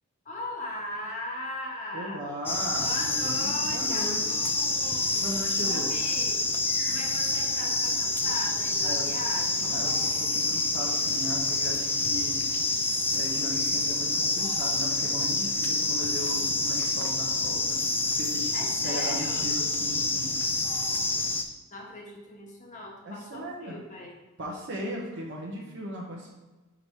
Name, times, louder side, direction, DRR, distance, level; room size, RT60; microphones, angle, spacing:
voice 1, 0.2-2.3 2.8-5.4 5.7-6.4 6.8-9.7 18.5-19.5 21.7-24.2, left 1 dB, 35° left, 0 dB, 1.2 m, -39 dB
voice 2, 1.9-4.5 5.2-5.9 8.8-9.1 9.6-12.4 12.7-18.5 18.8-20.3 23.0-23.8 24.4-26.3, equal, 60° right, -2 dB, 0.9 m, -37 dB
sound 1, 2.5-21.4, left 3 dB, 10° left, 0.4 m, -27 dB
5.2 x 4.4 x 4.3 m, 1.2 s
head